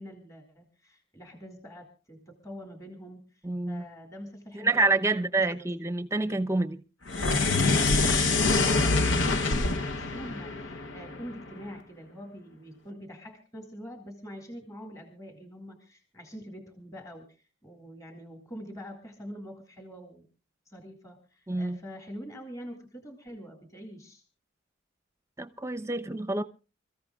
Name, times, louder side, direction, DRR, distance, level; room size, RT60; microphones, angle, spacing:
voice 1, 0.0-5.9 8.6-20.3 20.7-24.2, equal, 15° left, 2.2 m, -45 dB
voice 2, 3.4-3.8 4.5-6.8 21.5-21.8 25.4-26.4, right 3 dB, 15° right, 0.8 m, -27 dB
sound 1, 7.1-11.5, left 3 dB, 65° left, 1.0 m, -25 dB
27.5 x 14.5 x 2.4 m
head